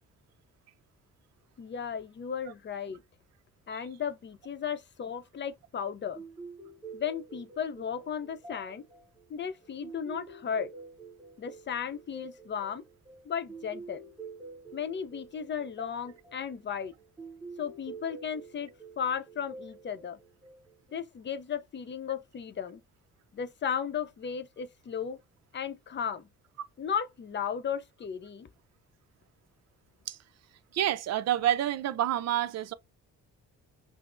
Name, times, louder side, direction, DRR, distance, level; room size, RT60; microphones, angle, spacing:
voice 1, 1.6-3.0 3.7-6.2 6.9-8.9 9.3-10.7 11.4-12.8 13.3-14.0 14.7-16.9 17.6-18.7 19.0-20.2 20.9-22.8 23.3-25.2 25.5-26.3 26.8-28.5, left 7 dB, 35° left, 0.6 m, -35 dB
sound 1, 6.2-20.9, right 4 dB, 15° right, 1.4 m, -48 dB
voice 2, 30.7-32.7, right 11 dB, 60° right, 0.5 m, -28 dB
5.8 x 2.0 x 2.5 m
cardioid pair, 90°, 30 cm